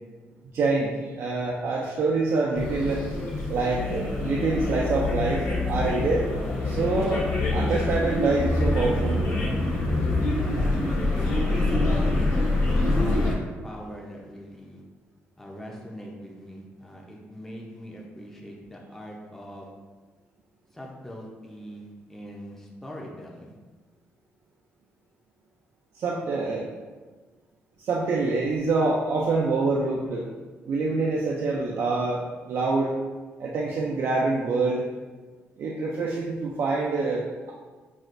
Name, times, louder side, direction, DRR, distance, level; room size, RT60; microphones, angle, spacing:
voice 1, 0.5-3.0 3.5-6.3 6.6-9.2 25.9-26.7 27.8-30.3 30.7-33.0 33.4-34.9 35.6-37.5, right 3 dB, 65° right, -3 dB, 0.4 m, -26 dB
sound 1, 2.5-13.3, left 2 dB, 80° left, 1.2 m, -25 dB
voice 2, 10.3-12.2 12.9-13.4 13.6-14.8 15.4-19.7 20.7-23.5, equal, 5° left, -2 dB, 0.6 m, -42 dB
6.0 x 2.4 x 2.5 m, 1.3 s
cardioid pair, 115°, 4 cm